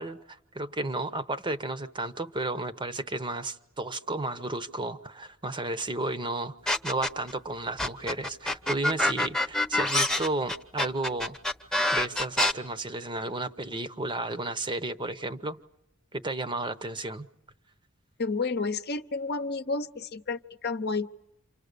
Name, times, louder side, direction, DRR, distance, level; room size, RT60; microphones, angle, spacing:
voice 1, 0.0-11.4 11.9-15.6 16.1-17.3, right 2 dB, 25° right, 0.9 m, -33 dB
sound 1, 6.7-7.3 7.8-12.5, left 1 dB, 5° left, 0.9 m, -26 dB
voice 2, 18.2-21.1, left 3 dB, 50° left, 0.9 m, -31 dB
28.5 x 26.0 x 6.8 m
head